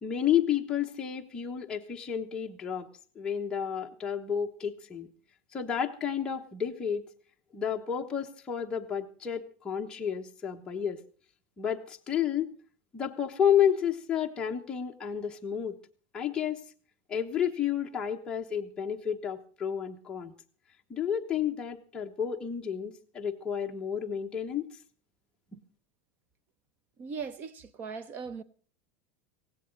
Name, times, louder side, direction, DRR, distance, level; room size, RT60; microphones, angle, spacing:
voice 1, 0.0-2.9 3.1-5.1 5.5-7.0 7.5-11.0 11.6-12.5 12.9-15.8 16.1-16.6 17.1-20.3 20.9-24.7, left 8 dB, 10° left, 1.2 m, -31 dB
voice 2, 27.0-28.4, right 5 dB, 30° right, 0.9 m, -39 dB
17.0 x 17.0 x 4.0 m
supercardioid pair, 170°, 7 cm